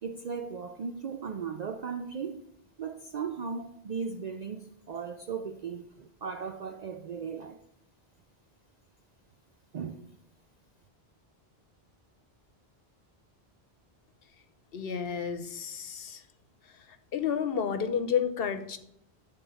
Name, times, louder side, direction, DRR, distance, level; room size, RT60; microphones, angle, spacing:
voice 1, 0.0-2.4 2.8-7.6 9.7-10.1, right 6 dB, 55° right, 0.5 m, -37 dB
voice 2, 14.7-16.2 17.1-18.8, left 7 dB, 65° left, 1.0 m, -30 dB
11.0 x 3.7 x 6.9 m
omnidirectional pair, 1.1 m